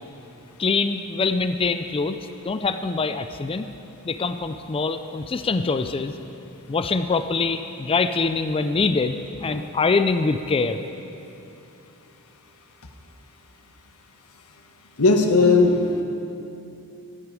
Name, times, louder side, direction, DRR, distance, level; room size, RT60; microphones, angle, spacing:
voice 1, 0.6-2.2 2.4-3.7 4.0-6.1 6.7-10.8, left 4 dB, 25° left, 10 dB, 0.4 m, -24 dB
voice 2, 15.0-16.0, left 3 dB, 75° left, 4 dB, 1.3 m, -17 dB
14.5 x 12.5 x 4.9 m, 2.8 s
head